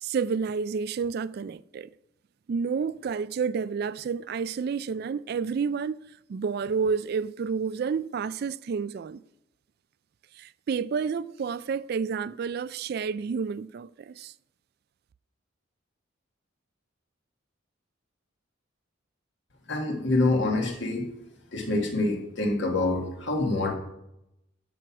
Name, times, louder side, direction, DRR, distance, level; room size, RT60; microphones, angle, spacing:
voice 1, 0.0-1.9 2.5-6.0 6.3-9.2 10.3-14.3, right 5 dB, 50° right, 0.3 m, -30 dB
voice 2, 19.7-21.1 21.5-23.7, left 2 dB, 60° left, 1.8 m, -26 dB
11.0 x 6.1 x 6.0 m
head